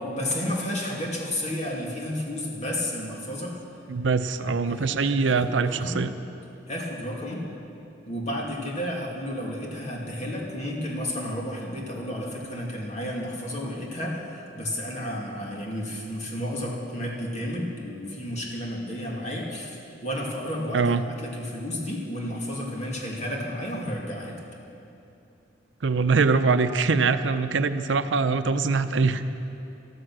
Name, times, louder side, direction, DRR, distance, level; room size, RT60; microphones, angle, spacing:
voice 1, 0.0-3.6 4.7-5.4 5.6-6.0 6.7-7.5 8.1-20.9 21.2-24.4, left 1 dB, 40° left, -2 dB, 2.3 m, -32 dB
voice 2, 3.9-6.1 20.7-21.0 25.8-29.2, right 4 dB, 90° right, 10 dB, 0.6 m, -23 dB
14.5 x 13.5 x 6.2 m, 2.8 s
head